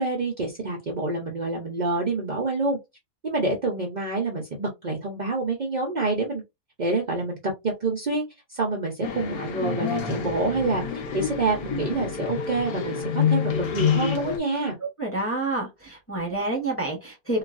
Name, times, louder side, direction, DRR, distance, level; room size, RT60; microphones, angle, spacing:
voice 1, 0.0-2.8 3.2-6.4 6.8-7.4 7.6-8.2 8.5-14.8, right 3 dB, 90° right, 0.4 m, -27 dB
sound 1, 9.0-14.4, left 7 dB, 70° left, 1.1 m, -27 dB
voice 2, 15.0-17.4, right 2 dB, 10° left, 0.6 m, -28 dB
3.0 x 2.3 x 2.5 m
omnidirectional pair, 1.7 m